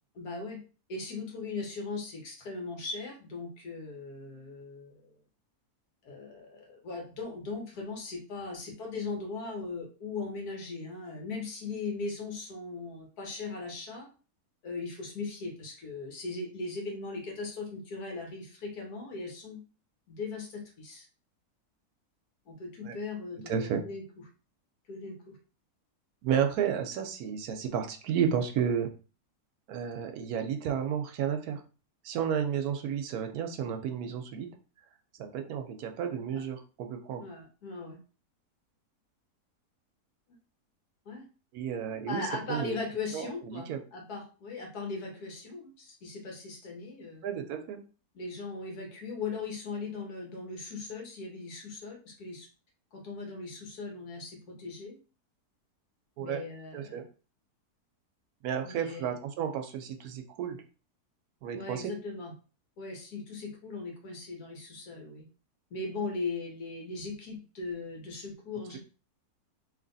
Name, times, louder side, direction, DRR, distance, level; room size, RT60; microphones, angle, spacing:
voice 1, 0.1-0.6 0.9-5.2 6.0-14.1 14.6-19.6 20.1-21.1 22.4-24.0 24.9-25.4 36.3-36.4 37.2-38.0 41.0-41.2 42.1-47.3 48.1-52.5 52.9-55.0 56.2-57.0 58.6-59.1 61.5-62.3 62.8-65.3 65.7-68.8, left 3 dB, 75° left, 1 dB, 1.6 m, -39 dB
voice 2, 23.5-23.8 26.2-28.9 29.7-31.6 32.0-34.5 35.2-37.2 41.5-42.8 43.1-43.8 47.2-47.8 56.2-56.4 56.7-57.0 58.4-60.6 61.4-61.9, right 8 dB, 75° right, 5 dB, 1.0 m, -32 dB
3.3 x 2.8 x 3.9 m, 0.36 s
omnidirectional pair, 1.7 m